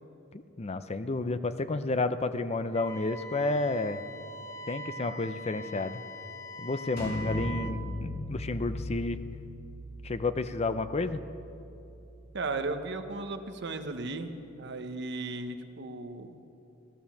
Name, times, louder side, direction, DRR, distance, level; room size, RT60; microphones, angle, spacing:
voice 1, 0.3-4.0 4.7-6.0 6.6-9.2 10.0-11.2, left 3 dB, 30° left, 12 dB, 0.5 m, -31 dB
Wind instrument woodwind instrument, 2.7-7.8, equal, 15° left, 1.1 m, -42 dB
sound 1, 7.0-12.6, left 1 dB, 50° left, 4.0 m, -39 dB
voice 2, 12.3-16.4, right 3 dB, 60° right, 8 dB, 1.0 m, -36 dB
15.5 x 12.5 x 7.1 m, 2.9 s
head